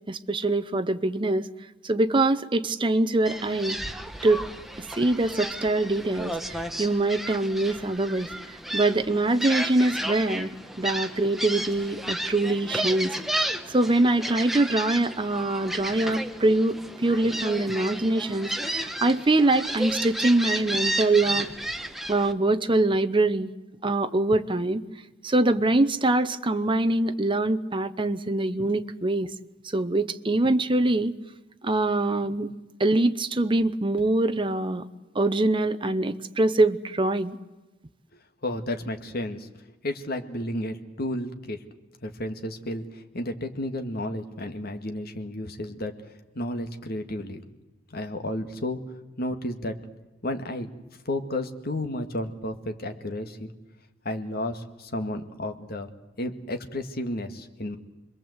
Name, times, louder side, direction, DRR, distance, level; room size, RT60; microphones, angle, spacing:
voice 1, 0.1-1.5 1.8-3.8 4.2-4.4 5.0-8.3 8.7-13.1 13.7-21.5 22.1-23.5 23.8-24.8 25.2-29.3 29.7-31.1 31.6-32.5 32.8-34.8 35.1-37.4, right 2 dB, 25° right, 9 dB, 0.8 m, -24 dB
Gull seagull, 3.3-22.3, right 1 dB, ahead, 1.2 m, -33 dB
voice 2, 38.4-39.5 39.8-41.6 42.0-45.9 46.3-47.4 47.9-48.8 49.2-49.8 50.2-50.7 51.1-53.5 54.1-55.9 56.2-57.8, left 1 dB, 55° left, 6 dB, 2.0 m, -32 dB
26.5 x 21.5 x 8.1 m, 1.1 s
head